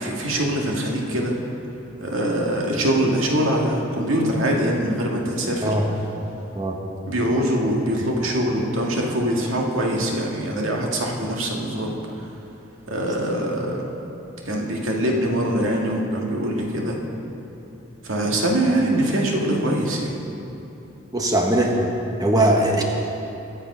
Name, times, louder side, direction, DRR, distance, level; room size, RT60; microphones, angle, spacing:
voice 1, 0.0-1.3 2.0-5.8 7.1-11.9 12.9-13.8 14.5-17.0 18.0-20.1, right 1 dB, 85° right, -1 dB, 2.0 m, -23 dB
voice 2, 21.1-21.8 22.2-22.8, right 1 dB, 20° right, 1 dB, 1.3 m, -20 dB
21.5 x 7.3 x 5.6 m, 2.9 s
head